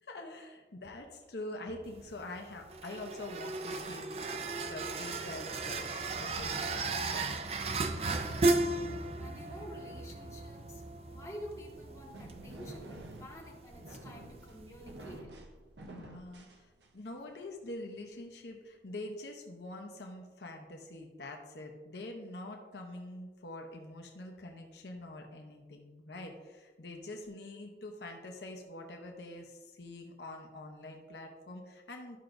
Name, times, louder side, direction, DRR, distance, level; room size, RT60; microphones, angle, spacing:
voice 1, 0.0-4.2 4.6-7.3 15.9-32.2, left 2 dB, 70° left, 2 dB, 0.8 m, -45 dB
sound 1, 1.8-15.2, right 3 dB, 35° right, 0.4 m, -36 dB
voice 2, 8.0-8.7 9.2-15.4, equal, 20° left, -4 dB, 1.6 m, -49 dB
sound 2, 11.6-17.2, right 1 dB, 85° right, 0.9 m, -50 dB
12.0 x 5.9 x 2.6 m, 1.3 s
head